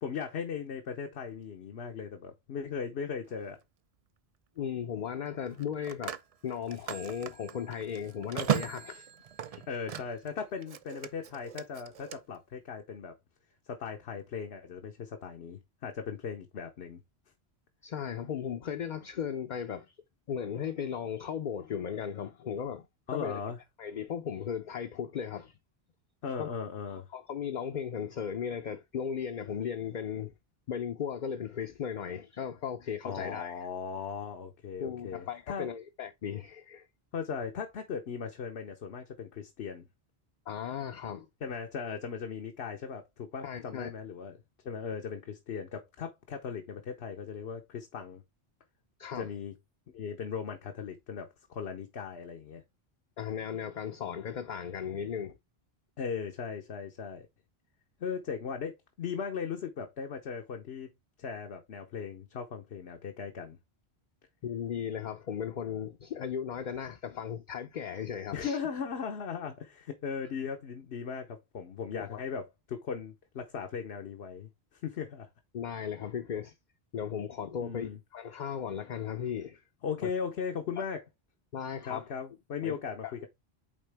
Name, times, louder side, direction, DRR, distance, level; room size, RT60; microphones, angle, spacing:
voice 1, 0.0-3.6 9.7-13.1 13.7-17.0 23.1-23.6 26.2-27.1 33.0-35.7 37.1-39.9 41.4-44.4 44.6-48.2 49.2-49.5 49.9-52.6 56.0-57.3 58.0-60.9 61.2-63.6 68.3-75.3 77.6-78.0 79.8-81.0 81.9-83.3, left 6 dB, 75° left, 1.1 m, -38 dB
Telephone, 3.3-3.5 5.5-10.3 10.6-12.2, right 9 dB, 50° right, 0.4 m, -37 dB
voice 2, 4.6-6.2 6.4-9.1 9.5-9.6 17.8-19.9 20.3-22.9 23.1-23.4 23.8-25.5 26.4-26.5 26.9-30.3 30.7-33.7 34.8-36.9 40.5-41.3 43.4-43.9 49.0-49.3 53.2-55.4 64.4-68.6 71.9-72.2 75.5-76.5 76.9-79.6 80.0-80.1 80.8-80.9 81.5-82.1 82.6-82.7 83.0-83.1, left 8 dB, 50° left, 0.7 m, -36 dB
8.9 x 3.7 x 3.4 m
omnidirectional pair, 1.1 m